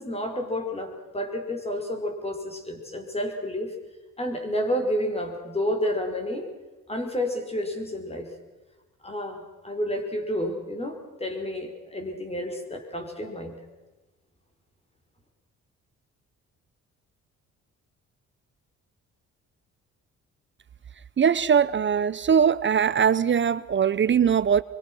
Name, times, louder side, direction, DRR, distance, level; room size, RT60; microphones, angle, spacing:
voice 1, 0.0-3.7 4.2-6.5 6.9-8.3 9.0-13.6, left 1 dB, 20° left, 5.3 m, -30 dB
voice 2, 21.2-24.6, right 7 dB, 40° right, 0.8 m, -21 dB
24.0 x 24.0 x 6.3 m
cardioid pair, 90°, 30 cm